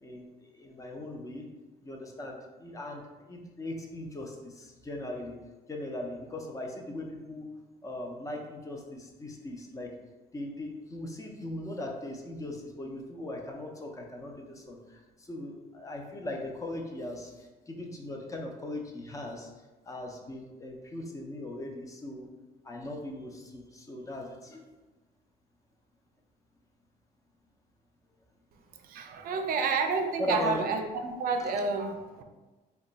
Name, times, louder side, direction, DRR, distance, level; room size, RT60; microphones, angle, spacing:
voice 1, 0.0-1.5 1.8-5.4 5.7-7.5 7.8-9.9 10.3-19.5 19.8-22.3 22.6-24.7 30.2-30.7 31.4-31.6, left 1 dB, 20° left, 1 dB, 0.5 m, -39 dB
voice 2, 28.9-32.2, right 4 dB, 60° right, 5 dB, 0.4 m, -30 dB
2.9 x 2.2 x 3.9 m, 1.2 s
cardioid pair, 110°, 17 cm